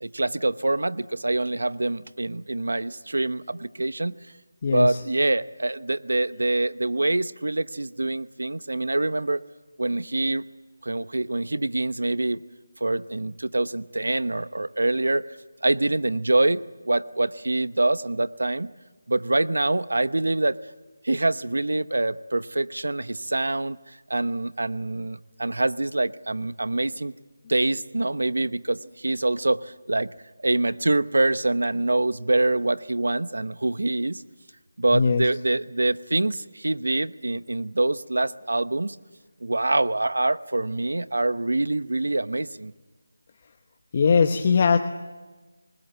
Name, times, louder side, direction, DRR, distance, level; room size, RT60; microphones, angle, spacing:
voice 1, 0.0-4.1 4.7-9.4 9.8-10.4 10.8-12.4 12.8-15.3 15.6-18.7 19.1-20.6 21.0-27.1 27.5-30.1 30.4-34.2 34.8-39.0 39.4-42.7, right 2 dB, 80° right, 16 dB, 0.9 m, -25 dB
voice 2, 4.6-5.0 34.9-35.2 43.9-44.8, left 5 dB, 30° left, 7 dB, 1.0 m, -20 dB
27.0 x 20.5 x 8.1 m, 1.3 s
figure-of-eight pair, 170°, 0 cm